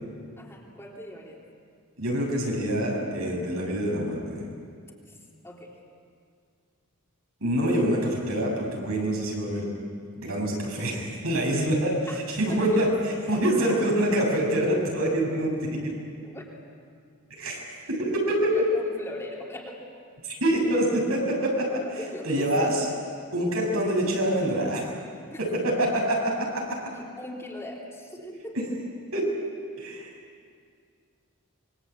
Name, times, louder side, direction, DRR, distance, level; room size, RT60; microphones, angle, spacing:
voice 1, 0.4-1.4 5.1-5.2 5.4-5.7 11.6-11.7 12.1-12.2 12.5-13.8 15.0-15.1 16.2-16.4 18.3-19.8 22.0-22.8 25.3-25.4 26.9-28.7, left 1 dB, 15° left, -3 dB, 3.7 m, -40 dB
voice 2, 2.0-4.4 7.4-9.7 10.2-15.9 17.3-17.6 17.9-18.7 20.2-22.9 23.3-24.9 25.4-26.8 28.5-28.6 29.1-29.3 29.8-30.1, right 1 dB, 75° right, -1 dB, 7.5 m, -26 dB
26.5 x 23.5 x 8.6 m, 2.2 s
head